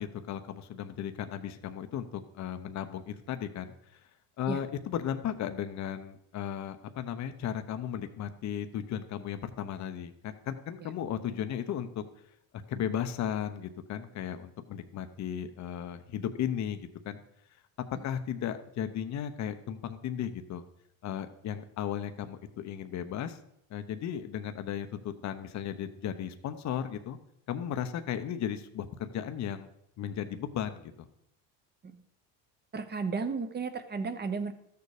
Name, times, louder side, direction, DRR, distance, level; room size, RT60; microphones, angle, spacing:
voice 1, 0.0-3.7 4.4-12.0 12.7-17.2 18.0-20.6 21.0-23.4 23.7-27.2 27.5-29.7 30.0-31.1, left 9 dB, 40° left, 9 dB, 0.9 m, -35 dB
voice 2, 32.7-34.5, right 4 dB, 25° right, 10 dB, 1.0 m, -34 dB
13.0 x 6.9 x 4.9 m, 0.75 s
supercardioid pair, 115°, 42 cm